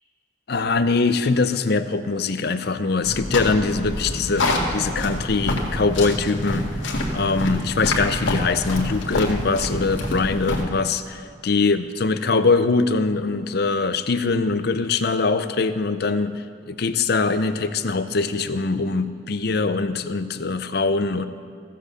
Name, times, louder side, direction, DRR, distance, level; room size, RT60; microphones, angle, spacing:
voice 1, 0.5-6.7 7.1-21.3, left 4 dB, 55° left, 11 dB, 0.6 m, -22 dB
sound 1, 3.0-10.6, left 1 dB, 70° left, 1.7 m, -26 dB
15.0 x 7.6 x 6.6 m, 2.4 s
head